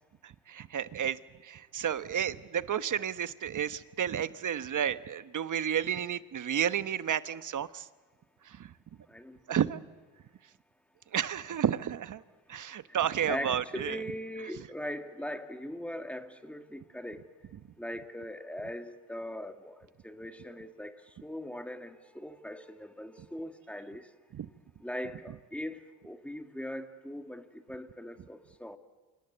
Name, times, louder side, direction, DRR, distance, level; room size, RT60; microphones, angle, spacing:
voice 1, 0.2-7.9 8.4-8.7 9.5-9.8 11.1-12.2 12.5-14.0 14.6-14.7 24.3-24.5, right 9 dB, 45° right, 12 dB, 1.2 m, -32 dB
voice 2, 9.1-9.6 13.3-17.3 17.8-24.1 24.8-28.8, equal, 5° left, 6 dB, 2.3 m, -40 dB
29.0 x 25.5 x 8.1 m, 1.3 s
supercardioid pair, 70°, 41 cm